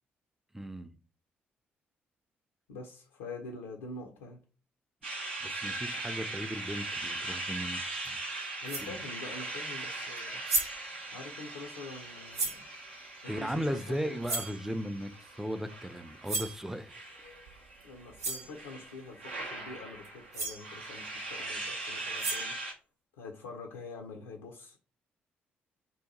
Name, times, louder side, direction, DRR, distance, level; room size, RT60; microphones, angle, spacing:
voice 1, 0.5-1.0 5.4-8.2 8.8-9.0 13.2-15.1 15.4-16.9, equal, 5° right, 0.3 m, -36 dB
voice 2, 2.7-4.4 8.6-10.4 11.1-12.7 13.2-14.2 17.8-22.6 23.2-24.8, left 3 dB, 75° left, 0.4 m, -45 dB
sound 1, 5.0-22.7, right 2 dB, 85° right, 0.5 m, -40 dB
sound 2, 8.0-8.1 8.7-9.0 10.2-10.3 10.5-10.9 12.3-12.7 14.2-14.6 16.2-16.6 17.8-17.9 18.2-18.5 20.0-20.1 20.3-20.7 22.0-22.6, right 3 dB, 55° right, 0.8 m, -33 dB
2.7 x 2.2 x 3.8 m
figure-of-eight pair, 40°, 6 cm